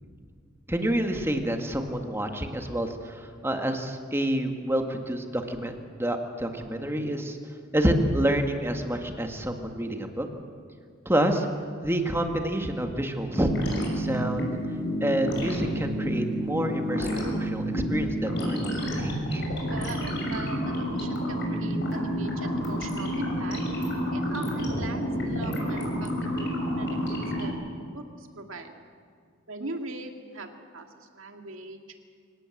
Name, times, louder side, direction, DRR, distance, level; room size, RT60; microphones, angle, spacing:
voice 1, 0.7-7.4 7.7-10.3 11.1-11.5 11.8-13.5 13.9-14.5 15.0-19.4, right 1 dB, 10° right, 4 dB, 1.8 m, -28 dB
sound 1, 13.3-27.5, equal, 60° left, 6.2 m, -29 dB
voice 2, 19.7-23.6 24.1-26.5 26.8-27.5 27.9-28.7 29.5-31.8, right 2 dB, 75° right, 4 dB, 2.3 m, -40 dB
25.5 x 18.0 x 7.8 m, 2.2 s
head